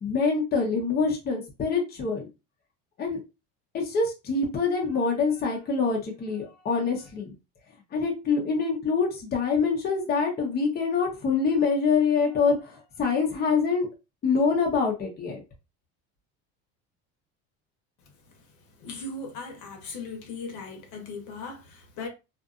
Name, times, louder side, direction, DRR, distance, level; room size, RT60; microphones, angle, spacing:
voice 1, 0.0-2.3 3.0-3.2 3.7-7.3 7.9-13.9 14.2-15.4, left 5 dB, 30° left, 0.8 m, -25 dB
voice 2, 18.8-22.1, left 3 dB, 65° left, 1.0 m, -38 dB
2.6 x 2.5 x 2.4 m
cardioid pair, 130°, 32 cm